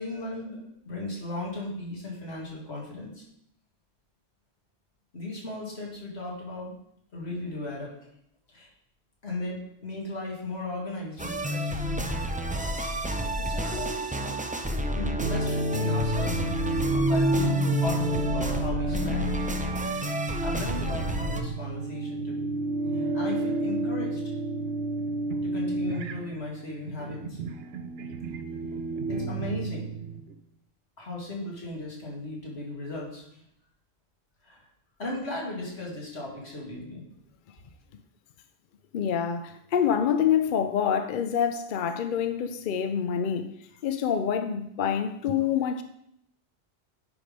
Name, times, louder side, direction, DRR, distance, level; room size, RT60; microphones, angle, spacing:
voice 1, 0.0-3.2 5.1-6.7 7.1-7.9 8.5-8.7 9.2-12.1 13.4-14.0 14.9-19.5 20.4-22.4 22.9-24.3 25.4-27.4 29.1-29.9 31.0-33.2 34.4-34.6 35.0-37.0, left 2 dB, 75° left, 2.4 m, -36 dB
sound 1, 11.2-21.4, equal, 10° right, 0.4 m, -29 dB
sound 2, 15.2-30.3, right 2 dB, 70° right, 0.8 m, -31 dB
voice 2, 38.9-43.5 43.8-45.8, left 8 dB, 60° left, 0.6 m, -26 dB
9.7 x 3.4 x 5.2 m
omnidirectional pair, 1.1 m